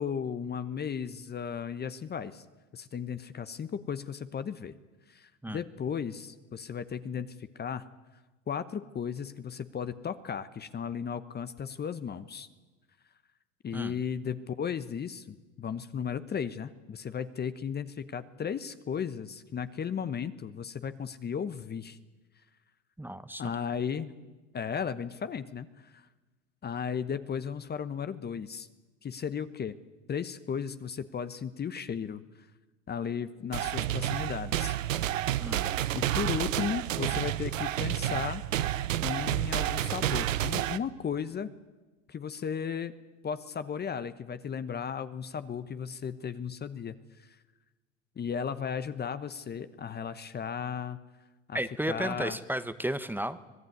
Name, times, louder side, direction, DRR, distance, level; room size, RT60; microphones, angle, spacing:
voice 1, 0.0-2.4 2.7-4.7 5.1-7.9 8.5-12.5 13.6-22.0 23.4-24.1 24.5-26.1 26.6-28.7 29.0-29.7 30.1-32.5 32.9-34.8 35.9-41.5 42.1-42.9 43.2-47.4 48.2-51.0 51.5-51.6 51.8-52.4, left 7 dB, 25° left, 12 dB, 1.1 m, -35 dB
voice 2, 23.0-23.4 35.4-35.7 51.5-53.4, right 1 dB, 5° right, 12 dB, 1.1 m, -33 dB
sound 1, 33.5-40.8, right 13 dB, 90° right, 0.9 m, -30 dB
25.0 x 18.0 x 9.5 m, 1.2 s
hypercardioid pair, 90°, 38 cm